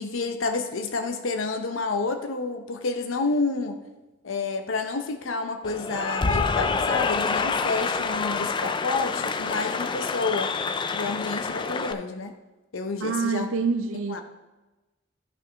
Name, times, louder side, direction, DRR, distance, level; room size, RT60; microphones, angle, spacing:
voice 1, 0.0-3.8 4.2-10.5 10.9-12.3 12.7-13.5 14.1-14.2, left 3 dB, 80° left, 7 dB, 0.7 m, -29 dB
Cheering / Applause, 5.6-11.9, left 4 dB, 25° left, 0.3 m, -27 dB
voice 2, 13.0-14.2, right 4 dB, 85° right, 7 dB, 0.5 m, -26 dB
13.0 x 5.9 x 3.4 m, 1.1 s
head